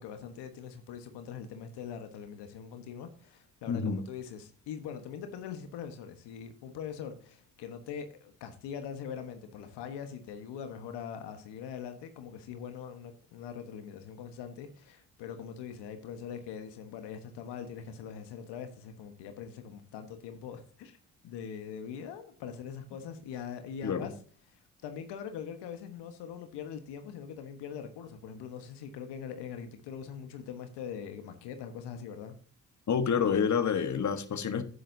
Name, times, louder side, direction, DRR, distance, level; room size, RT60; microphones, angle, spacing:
voice 1, 0.0-21.0 21.2-24.1 24.8-32.4, left 7 dB, 70° left, 1.3 m, -42 dB
voice 2, 3.7-4.0 23.8-24.1 32.9-34.6, left 7 dB, 40° left, 1.3 m, -28 dB
10.0 x 9.9 x 2.7 m
hypercardioid pair, 50°, 43 cm